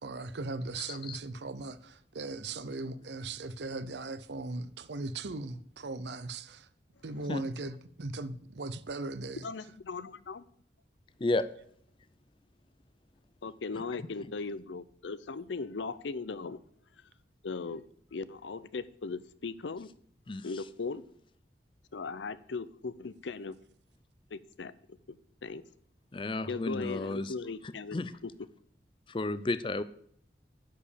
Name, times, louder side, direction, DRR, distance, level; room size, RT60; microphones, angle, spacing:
voice 1, 0.0-6.7 7.0-9.5, right 3 dB, 75° right, 0.7 m, -38 dB
voice 2, 0.9-1.2 7.3-7.4 11.2-11.4 20.3-20.5 26.1-27.3 27.6-28.1 29.1-29.8, left 2 dB, 30° left, 0.5 m, -32 dB
voice 3, 9.4-10.4 13.4-16.6 17.4-17.8 18.1-19.9 20.4-21.0 21.9-23.6 24.3-25.2 25.4-25.6 26.5-28.0, left 4 dB, 85° left, 0.6 m, -38 dB
10.5 x 5.1 x 8.3 m
head